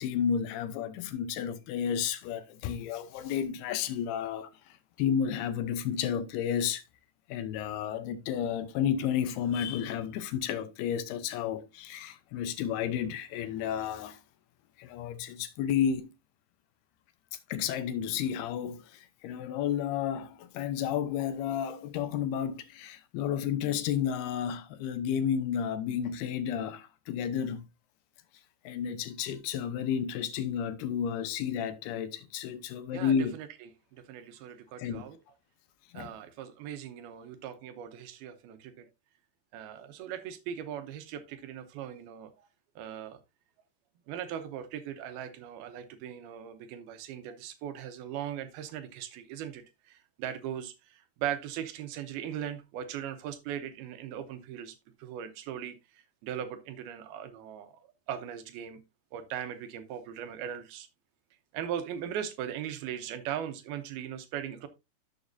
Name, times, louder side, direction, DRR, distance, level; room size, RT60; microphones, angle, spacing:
voice 1, 0.0-6.8 7.3-14.2 14.8-16.1 17.5-27.6 28.6-33.3 34.8-35.0 35.9-36.2, left 8 dB, 80° left, 2.7 m, -32 dB
voice 2, 32.9-33.5 33.9-35.2 35.9-38.9 39.5-42.3 42.8-43.2 44.1-57.7 58.1-58.8 59.1-60.9 61.5-64.7, right 9 dB, 75° right, 2.6 m, -39 dB
11.5 x 7.3 x 2.6 m
omnidirectional pair, 4.8 m